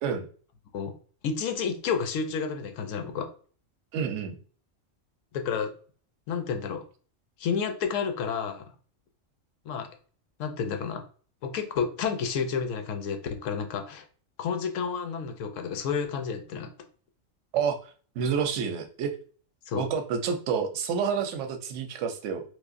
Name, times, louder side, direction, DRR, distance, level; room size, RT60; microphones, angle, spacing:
voice 1, 1.2-3.3 5.3-5.7 6.3-6.8 7.4-8.7 9.7-9.9 10.4-11.0 11.4-14.0 14.4-16.7 19.7-19.9, left 6 dB, 75° left, 6 dB, 0.9 m, -30 dB
voice 2, 3.9-4.4 17.5-17.8 18.2-19.1 19.7-22.4, right 6 dB, 70° right, 6 dB, 0.9 m, -29 dB
3.8 x 2.7 x 2.5 m, 0.42 s
omnidirectional pair, 1.3 m